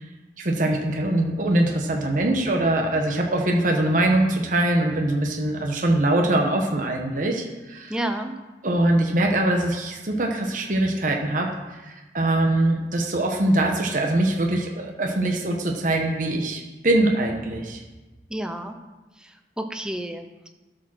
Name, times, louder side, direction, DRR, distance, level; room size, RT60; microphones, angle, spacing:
voice 1, 0.4-8.0 8.6-11.5 11.8-17.8, right 1 dB, 50° right, 2 dB, 1.1 m, -23 dB
voice 2, 7.9-8.3 18.3-18.8 19.2-20.5, right 1 dB, 5° right, 5 dB, 0.6 m, -31 dB
12.5 x 5.1 x 6.2 m, 1.2 s
head